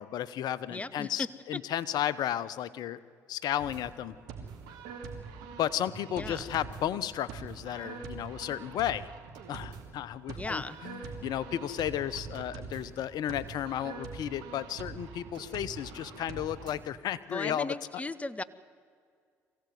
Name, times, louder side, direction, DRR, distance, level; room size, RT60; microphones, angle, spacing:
voice 1, 0.0-3.0 3.3-4.1 5.6-9.1 9.5-17.7, left 11 dB, 65° left, 16 dB, 0.9 m, -33 dB
voice 2, 0.7-1.3 6.1-6.5 10.4-10.8 17.3-18.4, left 2 dB, 20° left, 17 dB, 1.1 m, -36 dB
sound 1, 3.6-16.8, right 5 dB, 75° right, 2.5 m, -44 dB
23.5 x 16.0 x 9.4 m, 2.2 s
hypercardioid pair, 60°, 7 cm